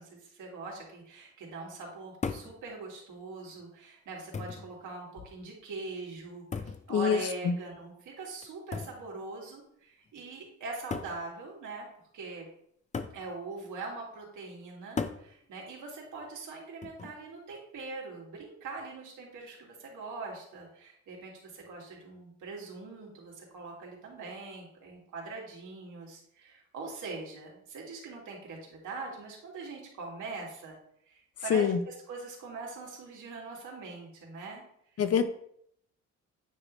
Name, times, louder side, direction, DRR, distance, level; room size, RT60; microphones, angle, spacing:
voice 1, 0.0-11.9 12.1-12.5 13.1-30.8 31.1-34.6, right 3 dB, 80° right, -3 dB, 2.6 m, -42 dB
sound 1, 2.2-2.6 3.6-3.7 4.3-4.7 6.5-6.9 8.7-9.0 10.1-10.2 10.9-11.2 12.9-13.2 15.0-15.3 16.8-17.2, left 5 dB, 25° left, 0.5 m, -36 dB
voice 2, 6.9-7.6 31.5-31.8 35.0-35.3, left 7 dB, 55° left, 9 dB, 0.8 m, -25 dB
9.3 x 4.0 x 3.2 m, 0.69 s
cardioid pair, 90°, 30 cm